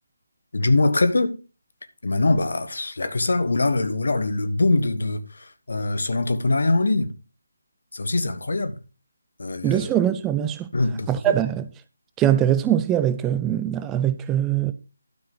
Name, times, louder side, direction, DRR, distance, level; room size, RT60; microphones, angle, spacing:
voice 1, 0.5-1.4 2.0-7.1 7.9-8.8 9.4-9.9 10.7-11.1, left 2 dB, 55° left, 1.3 m, -23 dB
voice 2, 9.6-10.7 11.1-11.7 12.2-14.7, right 11 dB, 10° right, 0.4 m, -22 dB
12.0 x 4.7 x 5.5 m
figure-of-eight pair, 150°, 0 cm